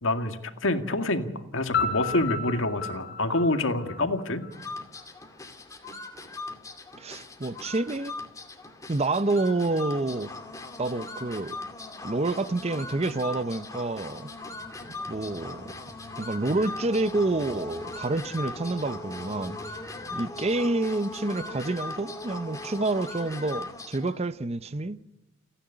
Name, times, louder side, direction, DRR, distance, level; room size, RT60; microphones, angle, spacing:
voice 1, 0.0-4.4, left 2 dB, 80° left, 2.1 m, -27 dB
Piano, 1.7-4.5, left 5 dB, 55° left, 2.1 m, -32 dB
sound 1, 4.5-24.2, left 2 dB, 15° left, 2.3 m, -39 dB
voice 2, 7.0-8.1 8.9-10.3 10.8-11.6 12.0-14.3 15.1-15.7 16.2-19.8 20.1-25.0, right 2 dB, 30° right, 0.7 m, -28 dB
sound 2, 14.4-21.2, equal, 60° right, 7.8 m, -52 dB
29.5 x 10.0 x 9.9 m
head